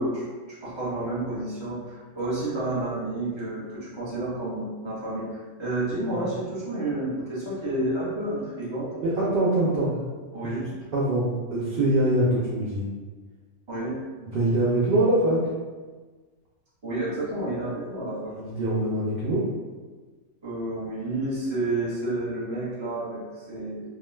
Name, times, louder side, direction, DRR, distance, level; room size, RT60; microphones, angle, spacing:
voice 1, 0.0-8.9 9.5-9.8 10.3-10.7 13.7-14.0 16.8-18.4 20.4-23.8, right 2 dB, 25° right, -8 dB, 0.8 m, -30 dB
voice 2, 9.0-9.9 10.4-12.8 14.3-15.4 18.3-19.5, right 1 dB, 60° right, -6 dB, 0.6 m, -24 dB
2.3 x 2.3 x 3.2 m, 1.4 s
omnidirectional pair, 1.4 m